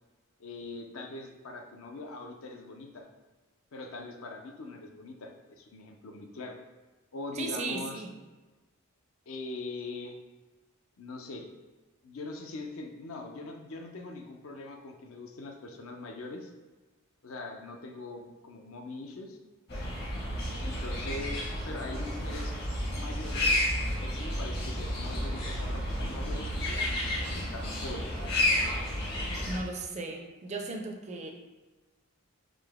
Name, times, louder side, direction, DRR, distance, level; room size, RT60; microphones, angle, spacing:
voice 1, 0.4-3.1 3.7-6.6 7.1-8.0 9.3-10.2 11.0-11.5 12.0-16.5 17.2-19.4 20.6-21.4 21.7-22.5 22.9-23.5 24.0-28.2, left 2 dB, 65° left, 3 dB, 0.5 m, -42 dB
voice 2, 7.3-8.1 29.5-31.3, right 3 dB, 30° right, 3 dB, 0.4 m, -36 dB
sound 1, 19.7-29.6, left 1 dB, 45° left, 1.0 m, -31 dB
3.8 x 2.9 x 3.4 m, 1.3 s
head